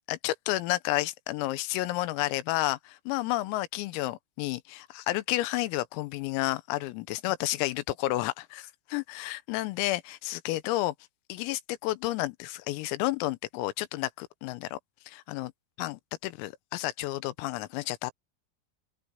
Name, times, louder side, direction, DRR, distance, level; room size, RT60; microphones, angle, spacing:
voice 1, 0.1-11.0 11.3-14.8 15.1-15.5 15.8-18.1, left 17 dB, 85° left, 3.6 m, -31 dB
open air
omnidirectional pair, 6.0 m